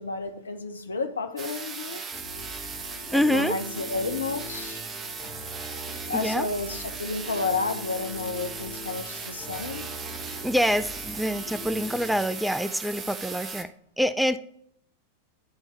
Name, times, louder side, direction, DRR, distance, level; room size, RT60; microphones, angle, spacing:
voice 1, 0.0-2.0 3.1-4.8 6.1-9.9, left 3 dB, 75° left, 0.7 m, -31 dB
sound 1, 1.4-13.6, right 5 dB, 25° right, 0.7 m, -38 dB
sound 2, 2.1-12.1, left 1 dB, 20° left, 2.4 m, -42 dB
voice 2, 3.1-3.5 6.1-6.5 10.4-13.7 14.0-14.4, equal, ahead, 0.3 m, -25 dB
10.5 x 4.1 x 3.3 m
figure-of-eight pair, 90°, 0 cm